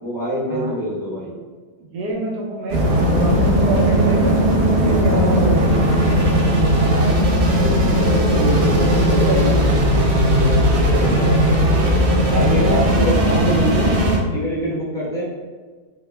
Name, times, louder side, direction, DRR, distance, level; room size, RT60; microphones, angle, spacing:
voice 1, 0.0-1.3 5.0-5.5 6.6-7.2 7.6-9.5 10.4-10.6 10.9-11.9 12.2-13.9 14.3-15.2, equal, 5° left, -8 dB, 0.5 m, -25 dB
voice 2, 1.8-4.5 4.7-6.3 8.8-9.8, right 1 dB, 75° right, -3 dB, 1.3 m, -27 dB
sound 1, 2.7-14.2, equal, 55° right, 0.8 m, -17 dB
3.7 x 2.1 x 3.3 m, 1.4 s
omnidirectional pair, 1.8 m